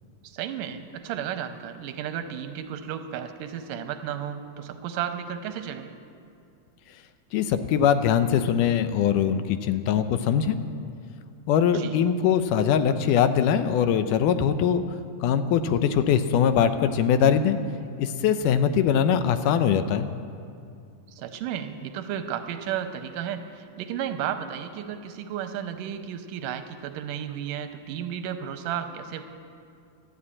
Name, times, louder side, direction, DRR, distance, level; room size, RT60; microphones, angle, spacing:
voice 1, 0.2-5.9 11.7-12.0 21.1-29.2, right 9 dB, 90° right, 8 dB, 2.3 m, -33 dB
voice 2, 7.3-10.6 11.5-14.8 15.2-17.6 18.0-20.1, left 8 dB, 80° left, 10 dB, 2.1 m, -22 dB
12.5 x 10.5 x 8.5 m, 2.5 s
omnidirectional pair, 3.8 m